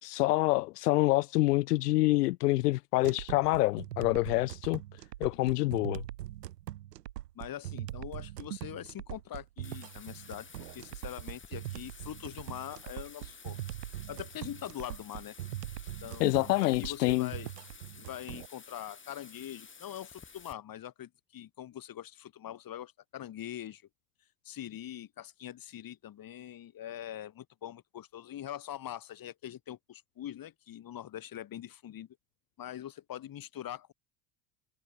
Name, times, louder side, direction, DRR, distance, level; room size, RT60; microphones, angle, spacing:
voice 1, 0.0-4.8 5.2-6.0 16.2-17.3, left 19 dB, 75° left, 1.5 m, -27 dB
sound 1, 3.0-18.5, right 14 dB, 80° right, 5.6 m, -42 dB
voice 2, 7.3-10.5 10.7-13.6 14.1-15.4 16.0-17.5 17.9-23.8 24.4-32.1 32.6-33.9, left 11 dB, 45° left, 5.9 m, -43 dB
Bathtub (filling or washing), 9.6-20.5, left 5 dB, 25° left, 4.9 m, -53 dB
hypercardioid pair, 70°, 48 cm